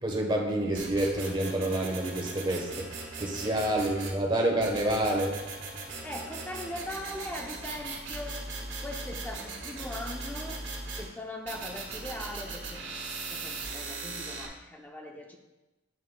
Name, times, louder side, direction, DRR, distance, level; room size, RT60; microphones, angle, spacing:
voice 1, 0.0-2.9 3.2-5.4, right 1 dB, 25° right, 1 dB, 1.1 m, -28 dB
sound 1, 0.7-4.2 4.6-11.0 11.5-14.5, right 3 dB, 75° right, 1.6 m, -39 dB
voice 2, 6.0-8.5 8.8-10.6 11.0-12.8 13.3-15.4, left 1 dB, 10° left, 1 dB, 0.6 m, -40 dB
8.7 x 7.5 x 2.3 m, 1.0 s
head